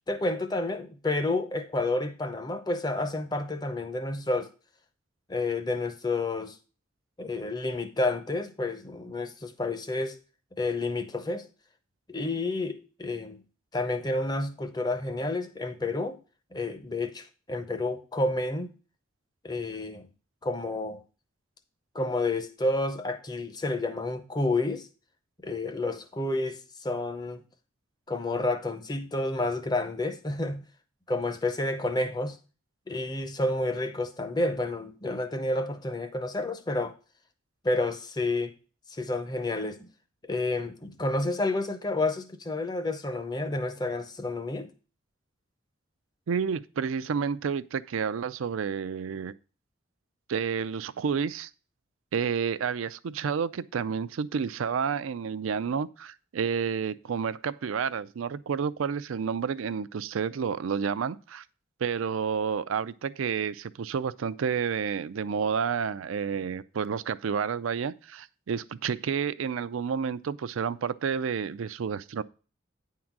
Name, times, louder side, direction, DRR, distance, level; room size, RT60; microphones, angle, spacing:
voice 1, 0.1-4.5 5.3-6.6 7.2-10.2 10.6-11.5 12.1-13.4 13.7-16.2 16.5-18.7 19.4-20.1 20.4-21.0 21.9-24.9 25.4-27.4 28.1-30.6 31.1-32.4 32.9-36.9 37.6-38.5 38.9-39.9 40.3-44.7, left 2 dB, 20° left, 0.6 m, -30 dB
voice 2, 46.3-49.3 50.3-51.5 52.1-61.4 61.8-72.2, right 6 dB, 85° right, 0.4 m, -30 dB
9.5 x 3.8 x 5.9 m
head